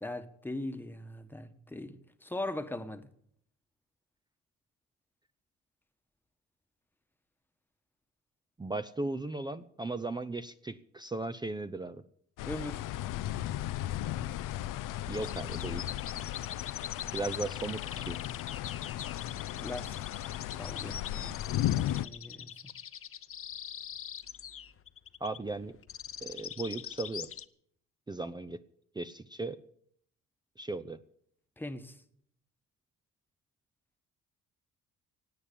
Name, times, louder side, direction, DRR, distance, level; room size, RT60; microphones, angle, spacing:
voice 1, 0.0-3.1 12.4-12.8 19.6-21.5 22.0-22.6 31.6-32.0, left 1 dB, 5° left, 1.3 m, -40 dB
voice 2, 8.6-12.0 15.1-15.9 17.1-18.2 25.2-25.8 26.2-27.3 28.1-28.6 28.9-29.6 30.6-31.0, right 2 dB, 15° right, 0.6 m, -37 dB
sound 1, 12.4-22.1, left 13 dB, 80° left, 0.6 m, -35 dB
sound 2, 15.1-27.5, left 9 dB, 45° left, 0.8 m, -43 dB
17.0 x 8.8 x 8.5 m
cardioid pair, 95°, 32 cm